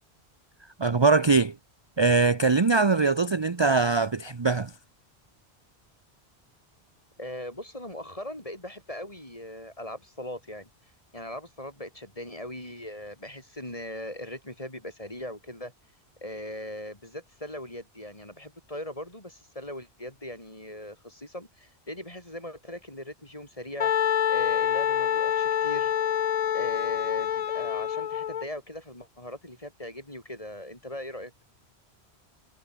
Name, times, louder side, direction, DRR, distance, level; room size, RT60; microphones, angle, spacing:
voice 1, 0.8-1.6 2.0-4.7, right 4 dB, 30° right, 0.7 m, -22 dB
voice 2, 7.2-10.7 11.1-15.7 16.2-23.9 24.3-25.9 26.5-31.3, left 1 dB, 30° left, 5.8 m, -39 dB
Wind instrument woodwind instrument, 23.8-28.4, left 9 dB, 55° left, 0.5 m, -26 dB
omnidirectional pair, 1.1 m